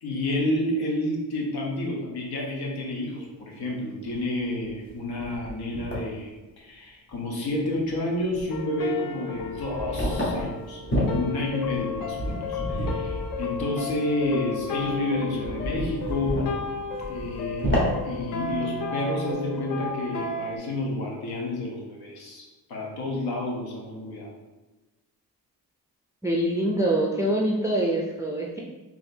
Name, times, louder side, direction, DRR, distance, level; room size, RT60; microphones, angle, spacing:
voice 1, 0.0-16.5 17.1-17.7 18.0-22.4 22.7-24.3, left 1 dB, 90° left, -1 dB, 1.0 m, -30 dB
sound 1, 3.5-3.6 4.1-4.2 4.5-6.1 7.1-7.2 7.6-7.9 8.2-8.6 9.4-18.8, equal, 30° left, 1.3 m, -31 dB
sound 2, 8.5-20.6, left 4 dB, 65° left, 0.5 m, -33 dB
voice 2, 26.2-28.6, right 1 dB, 10° right, -2 dB, 0.3 m, -24 dB
4.2 x 2.9 x 2.7 m, 1.1 s
wide cardioid pair, 130°, 37 cm